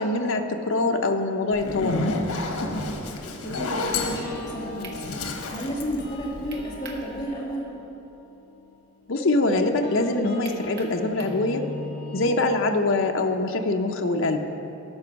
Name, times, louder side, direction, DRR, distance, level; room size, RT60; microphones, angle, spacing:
voice 1, 0.0-2.2 9.1-11.7 12.1-14.4, left 2 dB, 60° left, 4 dB, 0.7 m, -24 dB
Zipper (clothing), 1.5-6.8, left 2 dB, 80° left, 1.1 m, -30 dB
voice 2, 3.0-5.2 5.5-7.7, equal, 20° left, -6 dB, 1.9 m, -33 dB
sound 1, 4.0-12.3, left 3 dB, 40° left, 1.6 m, -42 dB
sound 2, 4.8-5.0 6.5-7.1 7.4-7.5 10.4-11.4, right 4 dB, 45° right, 1.1 m, -42 dB
13.0 x 6.1 x 5.8 m, 3.0 s
head